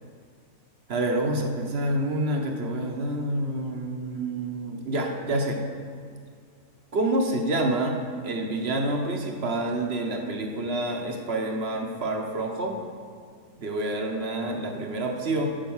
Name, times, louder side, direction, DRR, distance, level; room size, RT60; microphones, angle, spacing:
voice 1, 0.9-5.6 6.9-8.0 8.2-12.8 13.6-15.5, right 1 dB, 50° right, 3 dB, 1.0 m, -28 dB
9.1 x 5.2 x 7.2 m, 2.2 s
omnidirectional pair, 1.6 m